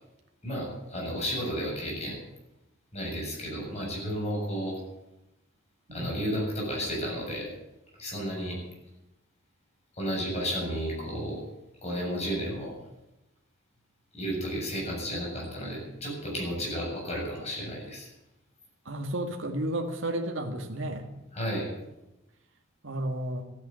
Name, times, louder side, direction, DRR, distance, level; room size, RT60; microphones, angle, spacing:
voice 1, 0.4-2.2 2.9-4.8 5.9-7.5 8.0-8.6 9.9-11.4 11.8-12.7 14.1-18.1 21.3-21.7, equal, 35° left, -3 dB, 7.4 m, -32 dB
voice 2, 18.9-21.1 22.8-23.4, right 1 dB, 65° right, 3 dB, 2.0 m, -32 dB
14.5 x 9.7 x 9.0 m, 0.92 s
head